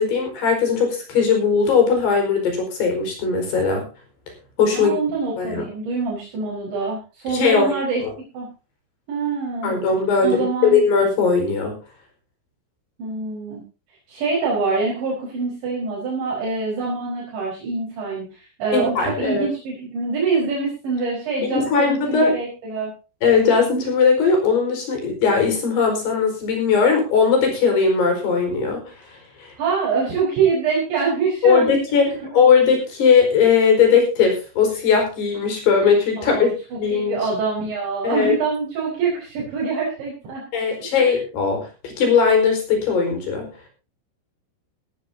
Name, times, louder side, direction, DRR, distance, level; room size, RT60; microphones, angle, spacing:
voice 1, 0.0-3.8 4.6-4.9 5.4-5.7 7.3-7.7 8.0-8.1 9.6-11.8 18.7-19.5 21.4-22.4 23.2-28.8 29.1-29.5 31.4-36.5 36.8-37.2 38.0-38.3 40.5-43.5, left 5 dB, 55° left, 4 dB, 6.6 m, -19 dB
voice 2, 4.7-8.0 8.3-8.5 9.1-9.8 10.2-10.8 13.0-13.6 14.1-22.9 29.6-32.3 36.2-36.5 36.7-40.4 41.0-41.1, right 4 dB, 65° right, -4 dB, 6.8 m, -25 dB
18.5 x 14.0 x 2.8 m, 0.32 s
omnidirectional pair, 5.6 m